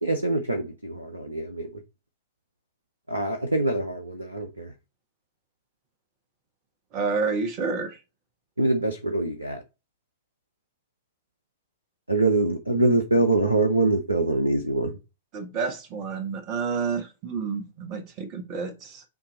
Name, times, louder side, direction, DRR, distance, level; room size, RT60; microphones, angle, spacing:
voice 1, 0.0-1.8 3.1-4.7 8.6-9.6 12.1-15.0, right 2 dB, 85° right, 0.8 m, -24 dB
voice 2, 6.9-8.0 15.3-19.0, right 5 dB, 35° right, 1.3 m, -29 dB
7.8 x 2.9 x 4.2 m
figure-of-eight pair, 100°, 0 cm